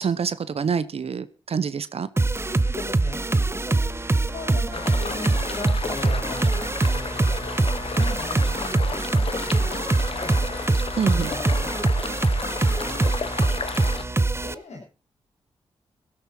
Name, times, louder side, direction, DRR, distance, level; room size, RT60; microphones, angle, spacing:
voice 1, 0.0-2.1 11.0-11.3, right 6 dB, 60° right, 15 dB, 0.9 m, -26 dB
sound 1, 2.2-14.5, right 2 dB, 20° right, 0.8 m, -23 dB
voice 2, 2.5-9.7 10.1-10.4 11.1-12.0 12.4-13.2 13.8-14.8, left 3 dB, 80° left, -2 dB, 6.4 m, -40 dB
sound 2, 4.7-14.0, left 5 dB, 55° left, 1.1 m, -33 dB
16.5 x 12.5 x 4.4 m, 0.34 s
supercardioid pair, 45°, 11 cm